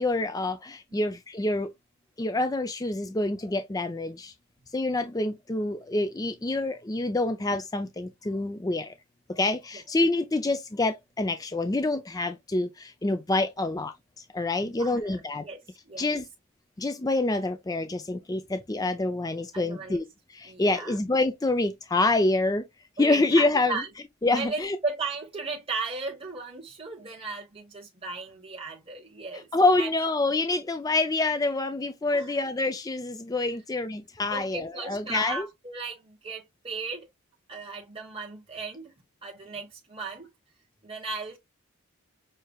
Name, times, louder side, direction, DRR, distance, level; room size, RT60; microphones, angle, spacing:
voice 1, 0.0-1.7 2.2-4.3 4.7-8.9 9.3-15.4 16.0-16.2 16.8-20.0 20.3-22.6 23.0-23.8 24.2-24.8 29.5-35.4, left 2 dB, 15° left, 0.4 m, -27 dB
voice 2, 14.8-15.2 15.4-16.1 19.5-20.0 20.4-21.0 23.0-23.9 24.3-29.5 29.8-29.9 32.1-32.3 34.3-37.1 37.5-38.9 39.2-40.3 40.8-41.4, right 3 dB, 25° right, 1.1 m, -36 dB
6.5 x 3.3 x 2.3 m
head